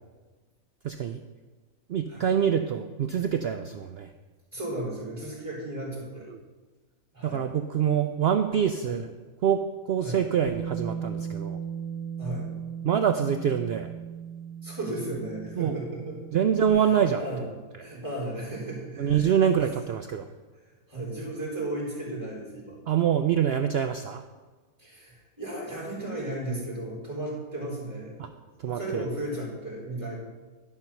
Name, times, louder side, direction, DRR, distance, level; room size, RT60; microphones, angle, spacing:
voice 1, 0.8-1.2 1.9-4.1 6.3-6.4 7.2-9.1 9.4-9.6 9.9-11.6 12.8-13.9 15.6-15.8 16.3-17.2 19.0-20.3 22.9-24.2 28.2-28.3 28.6-29.1, right 8 dB, 70° right, 8 dB, 0.6 m, -25 dB
voice 2, 4.5-6.3 7.1-7.5 8.8-9.0 10.0-10.2 12.2-12.5 14.6-16.4 16.7-17.4 17.8-19.8 20.9-22.8 24.8-28.3 28.7-30.2, right 1 dB, 15° right, -7 dB, 4.0 m, -35 dB
Bass guitar, 10.4-16.7, right 7 dB, 75° left, 1.3 m, -37 dB
12.0 x 5.4 x 5.9 m, 1.3 s
omnidirectional pair, 1.5 m